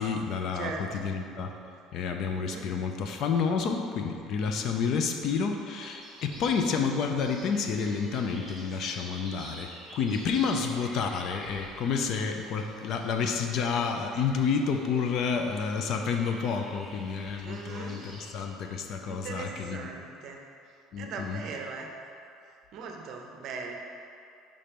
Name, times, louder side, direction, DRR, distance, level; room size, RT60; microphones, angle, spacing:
voice 1, 0.0-1.5 1.9-19.9 20.9-21.4, left 5 dB, 45° left, 5 dB, 0.4 m, -30 dB
voice 2, 0.5-1.1 2.3-2.7 9.0-9.5 17.4-18.0 19.1-20.4 21.0-21.9 22.7-23.7, right 4 dB, 45° right, 2 dB, 0.7 m, -40 dB
sound 1, 5.8-18.3, equal, 10° left, 1.1 m, -48 dB
5.2 x 4.3 x 5.1 m, 2.5 s
cardioid pair, 165°, 0 cm